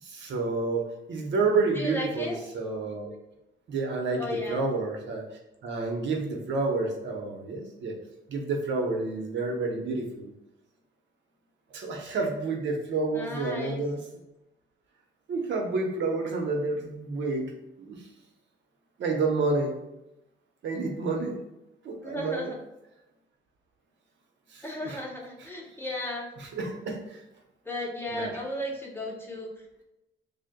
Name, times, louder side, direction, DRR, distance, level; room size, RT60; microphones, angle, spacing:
voice 1, 0.0-3.1 3.7-5.2 5.6-7.9 8.3-10.3 11.7-14.0 15.3-18.0 19.0-19.7 20.6-21.4 21.8-22.5 24.5-25.0 26.4-27.2 28.1-28.3, right 3 dB, 70° right, 1 dB, 0.9 m, -29 dB
voice 2, 1.7-2.4 4.2-4.6 13.1-13.8 22.0-22.6 24.6-26.3 27.6-29.6, left 1 dB, 10° left, -1 dB, 0.9 m, -34 dB
6.2 x 2.2 x 2.2 m, 0.92 s
cardioid pair, 90°, 20 cm